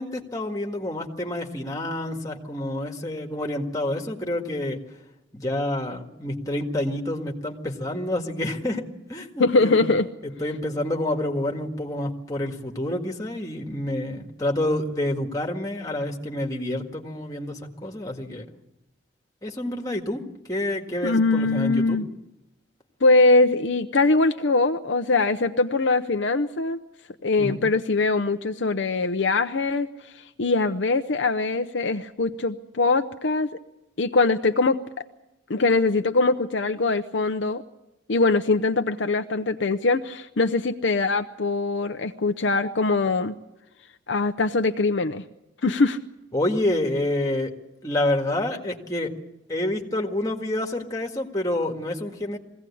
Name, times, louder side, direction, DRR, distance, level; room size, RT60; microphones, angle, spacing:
voice 1, 0.0-4.8 5.3-9.9 10.4-18.5 19.4-20.2 20.5-22.0 27.4-27.6 46.3-47.5 47.8-49.1 49.5-52.4, left 1 dB, 15° left, 2 dB, 1.9 m, -28 dB
voice 2, 9.4-10.1 21.0-22.1 23.0-26.8 27.2-29.9 30.1-33.5 34.0-35.0 35.5-37.6 38.1-43.3 44.1-45.2 45.6-46.0, left 3 dB, 65° left, 7 dB, 0.7 m, -22 dB
22.5 x 16.5 x 8.5 m, 0.94 s
head